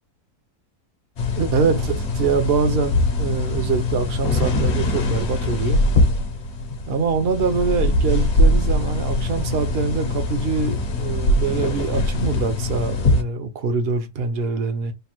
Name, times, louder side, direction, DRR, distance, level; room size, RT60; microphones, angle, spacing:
sound 1, 1.2-13.2, left 1 dB, 50° left, 0.9 m, -22 dB
voice 1, 1.4-5.8 6.9-14.9, right 5 dB, 50° right, 0.8 m, -24 dB
3.3 x 2.3 x 4.4 m
omnidirectional pair, 1.7 m